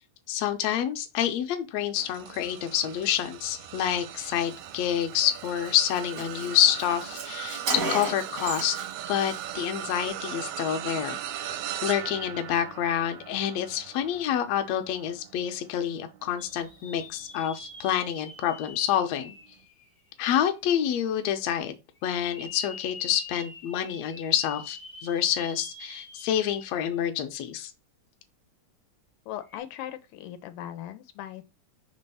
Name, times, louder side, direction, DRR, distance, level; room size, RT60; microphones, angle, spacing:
voice 1, 0.3-8.8 9.1-11.5 11.8-19.3 20.2-21.7 22.0-27.7, left 10 dB, 70° left, 1.8 m, -28 dB
sound 1, 2.0-17.5 18.0-18.2 19.5-19.6, right 11 dB, 80° right, 1.6 m, -39 dB
Car, 5.2-5.4 5.7-5.8 5.9-8.9 9.2-9.4, right 3 dB, 60° right, 0.8 m, -33 dB
sound 2, 16.4-20.3 20.9-21.0 22.0-27.0 27.4-27.5 29.4-29.6, left 2 dB, 35° left, 0.8 m, -45 dB
voice 2, 29.3-31.4, left 12 dB, 90° left, 2.1 m, -39 dB
5.3 x 3.3 x 5.5 m
omnidirectional pair, 3.5 m